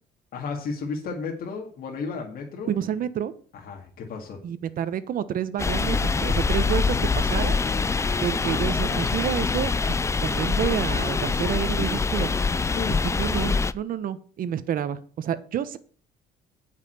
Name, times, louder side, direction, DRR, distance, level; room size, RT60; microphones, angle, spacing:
voice 1, 0.3-2.7 3.5-4.4 12.7-13.0, left 4 dB, 60° left, 1 dB, 2.3 m, -33 dB
voice 2, 2.7-3.3 4.4-7.6 8.2-9.7 10.2-12.3 13.0-15.8, right 9 dB, 55° right, 13 dB, 1.1 m, -29 dB
sound 1, 5.6-13.7, left 4 dB, 15° left, 0.5 m, -24 dB
Wind instrument woodwind instrument, 6.9-12.8, left 7 dB, 40° left, 1.3 m, -40 dB
9.1 x 5.8 x 8.1 m, 0.43 s
cardioid pair, 110°, 17 cm